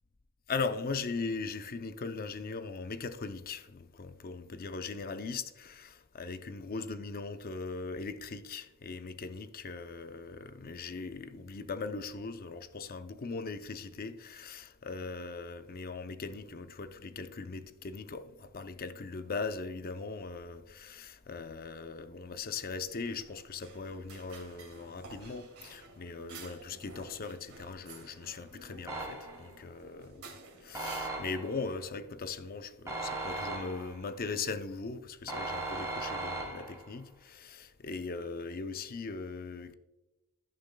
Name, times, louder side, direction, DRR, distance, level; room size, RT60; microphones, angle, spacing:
voice 1, 0.5-30.2 30.6-39.7, left 4 dB, 40° left, 0.6 m, -39 dB
sound 1, 22.5-31.9, right 3 dB, 75° right, 2.3 m, -52 dB
sound 2, 28.9-29.6 30.7-31.6 32.9-34.1 35.3-36.9, right 2 dB, 15° right, 2.4 m, -38 dB
15.5 x 6.5 x 2.2 m
head